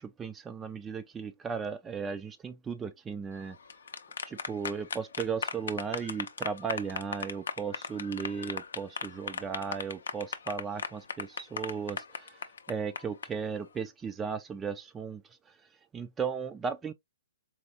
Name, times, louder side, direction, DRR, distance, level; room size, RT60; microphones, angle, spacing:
voice 1, 0.0-3.6 4.3-12.3 12.7-15.2 15.9-16.9, right 6 dB, 15° right, 0.3 m, -36 dB
sound 1, 3.5-13.3, left 6 dB, 70° left, 0.5 m, -37 dB
4.3 x 2.3 x 2.7 m
hypercardioid pair, 125°, 0 cm